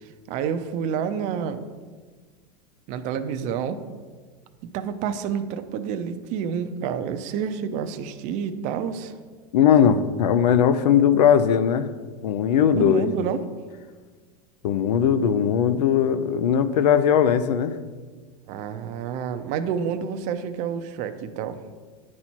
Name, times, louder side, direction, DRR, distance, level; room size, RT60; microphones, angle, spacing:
voice 1, 0.3-1.6 2.9-3.8 4.6-9.1 12.7-13.4 18.5-21.6, right 7 dB, 40° right, 9 dB, 0.5 m, -29 dB
voice 2, 9.5-11.9 12.2-13.1 14.6-17.7, left 8 dB, 90° left, 12 dB, 0.6 m, -19 dB
9.9 x 4.3 x 4.4 m, 1.5 s
supercardioid pair, 150°, 20 cm